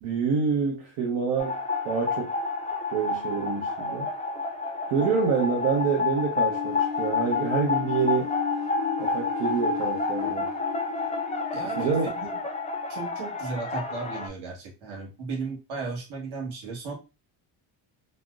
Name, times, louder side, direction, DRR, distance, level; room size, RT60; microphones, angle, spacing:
voice 1, 0.0-1.6 1.8-2.3 2.9-4.1 4.9-8.3 9.0-10.5 11.8-12.1, right 5 dB, 90° right, 0.9 m, -27 dB
sound 1, 1.4-14.3, left 4 dB, 15° left, 0.4 m, -30 dB
sound 2, 6.5-13.4, left 8 dB, 60° left, 0.6 m, -36 dB
voice 2, 11.5-12.3 12.9-16.9, right 4 dB, 70° right, 1.3 m, -35 dB
4.2 x 2.0 x 2.3 m
cardioid pair, 95°, 49 cm